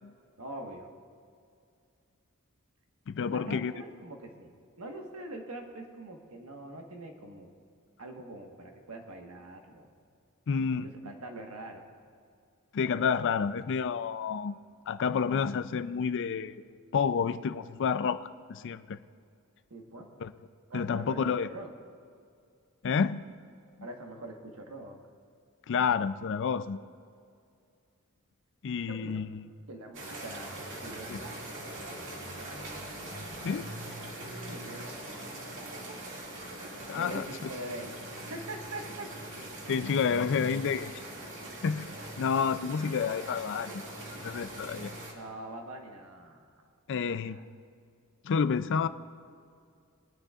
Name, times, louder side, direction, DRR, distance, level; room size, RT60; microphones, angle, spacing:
voice 1, 0.4-0.9 3.3-7.5 8.0-9.9 10.8-11.9 19.7-20.1 20.7-21.7 23.8-25.0 28.9-29.2 29.7-31.6 34.5-34.9 36.9-37.9 38.2-39.1 45.1-46.6 47.1-47.4, right 2 dB, 80° right, 2 dB, 1.4 m, -43 dB
voice 2, 3.1-3.7 10.5-10.9 12.7-14.6 14.9-16.5 16.9-19.0 20.2-20.3 20.7-21.5 22.8-23.2 25.7-26.8 28.6-29.4 31.1-31.2 33.4-33.7 36.9-37.3 39.7-40.9 41.6-41.9 42.2-43.7 44.2-44.9 46.9-47.4 48.2-48.9, left 6 dB, 60° left, 13 dB, 0.4 m, -29 dB
sound 1, 29.9-45.1, right 1 dB, 60° right, 2.2 m, -42 dB
21.5 x 10.0 x 2.4 m, 2.3 s
head